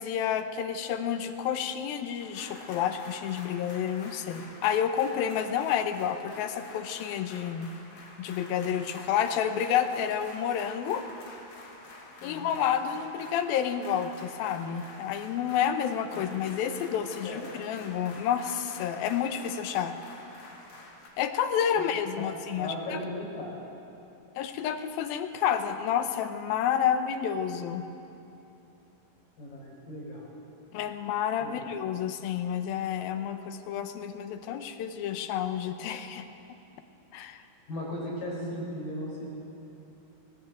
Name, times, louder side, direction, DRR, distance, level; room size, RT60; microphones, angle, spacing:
voice 1, 0.0-7.7 8.2-11.0 12.2-20.0 21.2-23.0 24.4-27.8 30.7-36.3 37.1-37.4, left 9 dB, 85° left, 8 dB, 2.8 m, -30 dB
sound 1, 2.2-21.1, left 2 dB, 55° left, 3.4 m, -48 dB
voice 2, 22.5-23.5 29.4-30.3 31.4-31.7 37.7-39.3, left 1 dB, 70° left, -3 dB, 6.7 m, -37 dB
18.5 x 18.0 x 8.3 m, 2.9 s
omnidirectional pair, 4.1 m